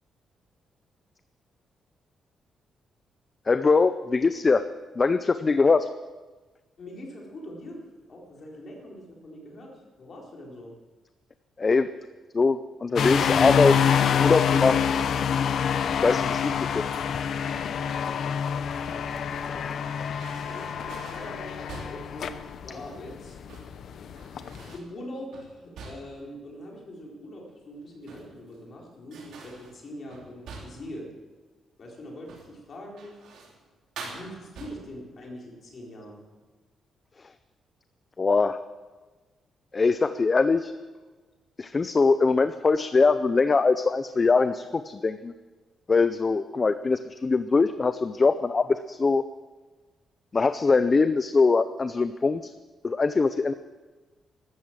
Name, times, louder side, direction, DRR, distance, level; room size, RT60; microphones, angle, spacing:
voice 1, 3.5-4.6 5.0-5.9 11.6-11.9 12.3-13.8 14.2-14.8 16.0-16.8 38.2-38.6 39.7-40.7 41.6-45.3 45.9-49.2 50.3-52.4 52.8-53.5, left 4 dB, 25° left, 11 dB, 0.5 m, -22 dB
voice 2, 6.8-7.8 8.1-10.7 19.3-19.8 20.2-23.3 24.7-31.1 31.8-33.1 34.0-36.2, left 1 dB, 40° left, -2 dB, 4.3 m, -42 dB
sound 1, 13.0-24.7, left 7 dB, 55° left, 0.8 m, -26 dB
sound 2, 16.9-17.3 18.9-19.7 20.2-22.1 23.3-23.8 24.2-24.9 25.3-26.3 27.8-28.6 29.1-30.9 32.2-32.6 33.0-33.6 34.0-35.0, right 4 dB, 75° right, 3.4 m, -45 dB
14.0 x 13.0 x 7.5 m, 1.3 s
wide cardioid pair, 170°, 0 cm